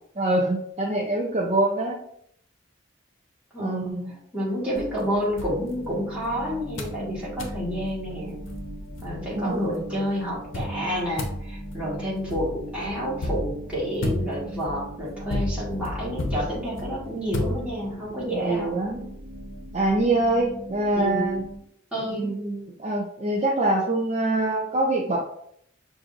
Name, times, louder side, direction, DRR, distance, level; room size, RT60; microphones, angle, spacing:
voice 1, 0.2-2.0 3.6-4.1 9.2-9.9 18.3-19.0 19.7-21.4 22.1-25.2, right 2 dB, 30° right, -2 dB, 0.5 m, -25 dB
voice 2, 3.5-3.9 4.3-8.4 9.0-18.8 20.9-21.4 21.9-22.3, equal, 5° right, -8 dB, 1.6 m, -29 dB
sound 1, 4.8-6.3 6.8-7.0 7.4-7.6 8.2-8.3 8.5-9.6 10.5-18.1, left 1 dB, 75° left, 0.8 m, -33 dB
sound 2, 5.6-21.6, right 1 dB, 90° right, 1.2 m, -40 dB
5.9 x 2.6 x 2.5 m, 0.68 s
head